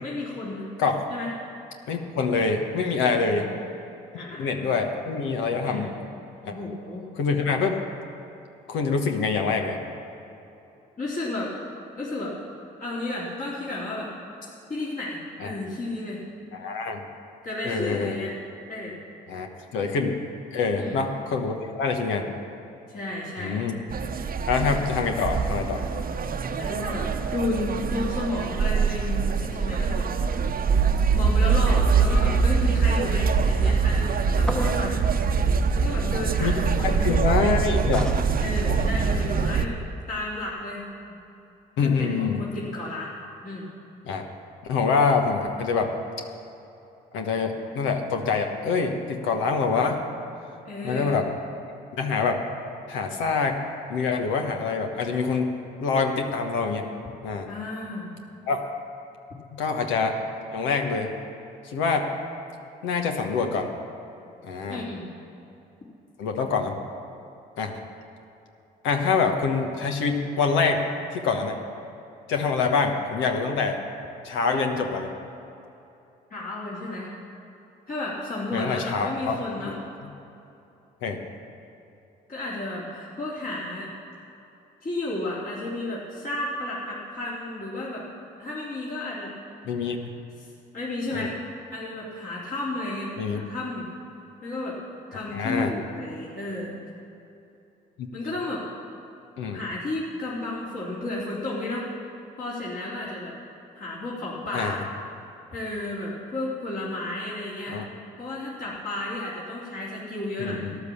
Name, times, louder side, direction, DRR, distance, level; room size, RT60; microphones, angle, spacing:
voice 1, 0.0-0.7 1.1-1.3 3.2-3.6 4.1-4.5 5.6-5.9 6.5-7.1 11.0-11.5 12.0-12.3 12.8-14.1 14.7-16.2 17.4-18.3 18.7-18.9 20.7-21.0 22.9-23.6 26.6-30.1 31.1-34.9 35.7-37.1 38.4-39.8 40.1-41.2 41.8-43.1 43.4-43.7 50.6-51.2 57.4-58.1 64.7-65.0 76.3-77.1 77.9-79.8 82.3-83.9 84.8-88.0 88.4-89.3 90.4-90.5 90.7-91.4 91.7-93.9 94.4-94.8 95.1-96.7 98.1-98.6 99.5-101.9 102.4-103.3 103.7-104.9 105.5-107.8 108.2-110.6, left 2 dB, 45° left, -8 dB, 3.4 m, -32 dB
voice 2, 1.9-3.5 4.1-5.9 6.4-6.5 7.1-7.8 8.7-9.8 15.4-15.5 16.5-17.0 17.6-18.2 19.3-19.5 19.7-20.2 20.5-22.3 23.4-23.8 24.5-25.8 36.4-36.5 36.8-38.1 38.7-38.8 41.8-42.4 44.0-44.2 44.6-45.9 47.1-50.0 50.8-51.2 52.0-52.4 52.9-53.6 53.9-55.5 55.8-56.9 57.2-57.5 58.5-58.6 59.6-60.2 60.5-61.1 61.7-62.1 62.8-63.7 64.4-64.8 66.2-66.7 67.6-67.7 68.8-70.8 71.1-71.6 72.3-73.8 74.2-75.1 78.5-79.4 79.6-79.7 81.0-81.2 89.6-90.0 91.1-91.3 93.2-93.4 95.3-95.7 98.0-98.1 99.4-99.6 104.5-104.8 107.7-107.8 110.4-110.8, left 5 dB, 75° left, 3 dB, 1.3 m, -25 dB
sound 1, 23.9-39.7, right 5 dB, 50° right, 0.9 m, -23 dB
sound 2, 34.4-34.9 37.9-38.3, equal, 5° left, 1.1 m, -33 dB
13.0 x 10.5 x 7.1 m, 2.9 s
hypercardioid pair, 55°, 20 cm